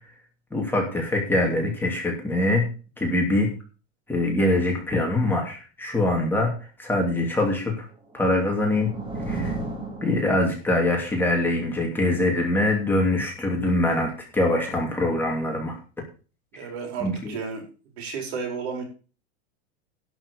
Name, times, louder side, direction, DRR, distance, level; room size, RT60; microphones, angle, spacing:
voice 1, 0.5-2.7 3.0-3.5 4.1-6.5 6.8-7.9 8.1-8.9 9.3-9.5 10.0-15.8 17.0-17.3, left 1 dB, 5° left, -1 dB, 2.7 m, -23 dB
sound 1, 8.0-10.8, right 2 dB, 15° right, 2.4 m, -34 dB
voice 2, 16.5-17.6 18.0-18.8, right 5 dB, 65° right, 3 dB, 5.0 m, -32 dB
11.5 x 6.1 x 6.8 m, 0.36 s
supercardioid pair, 150°, 35 cm